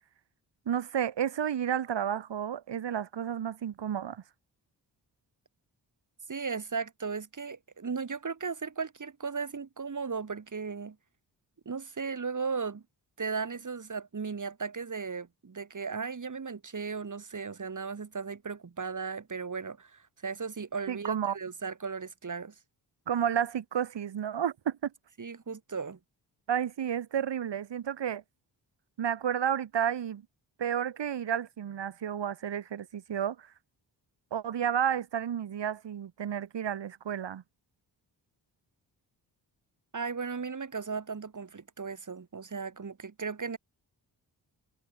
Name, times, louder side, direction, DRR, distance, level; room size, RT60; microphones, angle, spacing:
voice 1, 0.7-4.2 20.9-21.4 23.1-24.9 26.5-28.2 29.0-30.2 30.6-33.5 34.3-37.4, right 9 dB, 75° right, 5.5 m, -31 dB
voice 2, 6.3-11.0 11.7-12.8 13.2-22.5 25.2-26.0 39.9-43.6, right 5 dB, 45° right, 5.5 m, -36 dB
cardioid pair, 75°, 43 cm